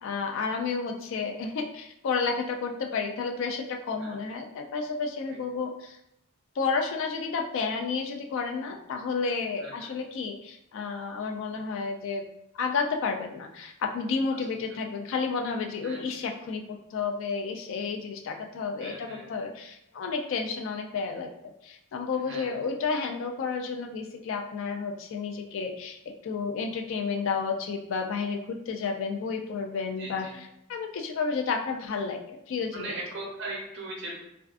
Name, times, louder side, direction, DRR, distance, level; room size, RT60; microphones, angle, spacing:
voice 1, 0.0-6.0 6.6-12.2 12.5-21.3 21.6-32.9, left 5 dB, 60° left, 3 dB, 0.3 m, -31 dB
voice 2, 9.6-9.9 15.8-16.1 18.8-19.3 22.1-22.5 30.0-30.3 32.7-34.1, right 2 dB, 55° right, -2 dB, 0.7 m, -39 dB
2.4 x 2.4 x 2.3 m, 0.82 s
head